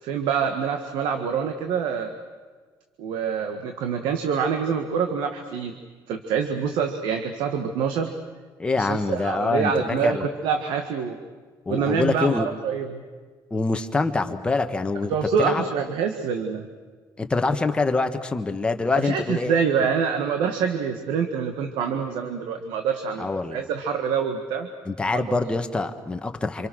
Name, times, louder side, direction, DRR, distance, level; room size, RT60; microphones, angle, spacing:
voice 1, 0.0-2.1 3.0-5.7 6.1-8.1 8.8-11.2 11.7-12.9 15.1-16.7 18.9-24.7 25.1-25.4, right 6 dB, 85° right, 6 dB, 1.9 m, -26 dB
voice 2, 8.6-10.3 11.6-12.5 13.5-15.6 17.2-19.5 23.2-23.6 24.8-26.7, left 3 dB, 15° left, 6 dB, 1.5 m, -25 dB
27.5 x 27.0 x 6.5 m, 1.5 s
cardioid pair, 160°, 8 cm